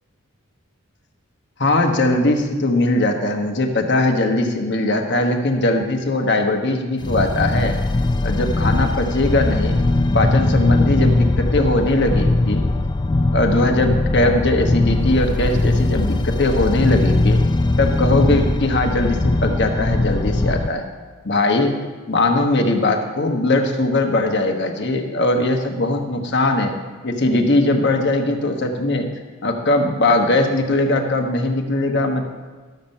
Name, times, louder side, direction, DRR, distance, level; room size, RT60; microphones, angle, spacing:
voice 1, 1.6-7.7 8.2-9.8 10.1-12.6 13.3-17.4 17.8-20.8 21.2-21.7 22.1-26.7 27.0-29.0 29.4-32.2, left 2 dB, 50° left, 4 dB, 1.2 m, -20 dB
sound 1, 7.0-20.7, left 2 dB, 20° left, 0.3 m, -20 dB
12.0 x 7.3 x 5.4 m, 1.4 s
head